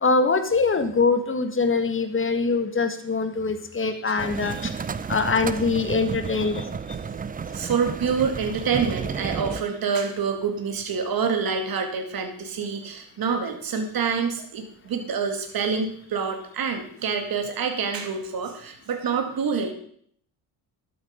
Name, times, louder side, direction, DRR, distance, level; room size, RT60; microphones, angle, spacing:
voice 1, 0.0-4.6 5.1-6.6, left 4 dB, 30° left, 8 dB, 1.8 m, -23 dB
voice 2, 3.8-4.2 5.0-5.1 5.8-6.0 7.0-7.2 7.5-19.7, right 6 dB, 55° right, 5 dB, 2.3 m, -27 dB
sound 1, 4.2-9.6, right 6 dB, 20° right, 0.5 m, -32 dB
12.0 x 8.1 x 5.3 m, 0.62 s
supercardioid pair, 80°, 42 cm